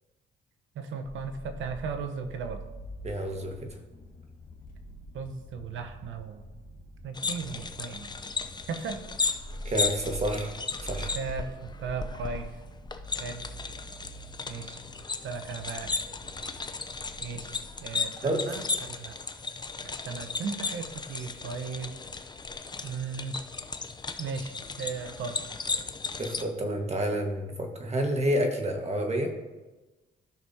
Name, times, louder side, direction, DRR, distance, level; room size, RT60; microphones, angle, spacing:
voice 1, 0.7-2.6 5.1-6.4 7.0-8.1 8.7-9.0 11.1-12.6 13.2-13.5 14.5-14.8 15.2-16.0 17.2-17.5 17.8-19.2 19.8-21.9 22.8-23.4 24.2-25.4, right 5 dB, 75° right, 7 dB, 1.1 m, -36 dB
sound 1, 1.0-17.8, right 1 dB, 45° left, 1.4 m, -45 dB
voice 2, 3.0-3.8 9.6-10.5 10.8-11.1 18.2-18.4 26.2-29.3, equal, 35° right, 3 dB, 1.6 m, -29 dB
sound 2, 7.1-26.4, left 4 dB, 20° left, 0.7 m, -35 dB
14.5 x 6.2 x 2.8 m, 1.2 s
cardioid pair, 90°, 20 cm